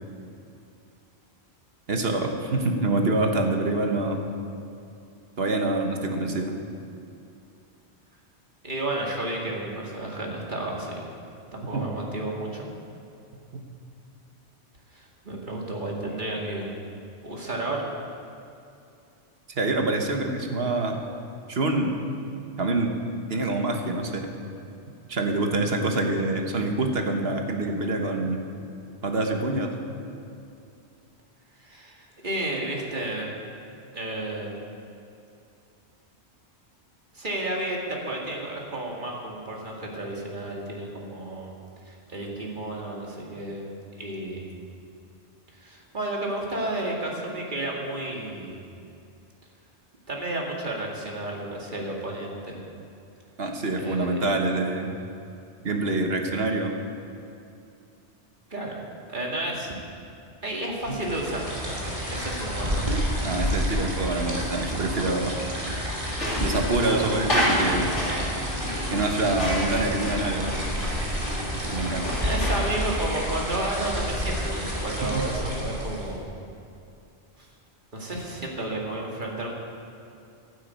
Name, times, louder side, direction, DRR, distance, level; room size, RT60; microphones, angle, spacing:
voice 1, 1.9-4.2 5.4-6.6 11.7-11.9 19.5-20.9 21.5-22.0 22.6-23.0 23.3-24.3 25.1-28.4 29.0-29.7 53.4-54.9 55.6-56.8 60.9-61.0 63.2-65.3 66.4-67.9 68.9-70.5 71.6-72.1 75.0-75.3, right 2 dB, 60° right, 3 dB, 1.5 m, -26 dB
voice 2, 8.6-11.0 11.5-12.7 14.9-16.7 17.2-17.8 31.6-33.3 33.9-34.5 37.1-41.5 41.9-43.7 44.0-44.5 45.5-48.6 50.1-52.6 53.8-54.2 58.5-58.8 59.1-59.7 60.4-62.9 71.7-76.3 77.4-77.5 77.9-79.5, right 1 dB, 45° right, -2 dB, 2.3 m, -32 dB
sound 1, 60.8-76.2, equal, 30° right, 2.8 m, -30 dB
sound 2, 66.2-72.7, equal, 85° left, 3.1 m, -30 dB
12.0 x 9.8 x 8.3 m, 2.6 s
omnidirectional pair, 1.2 m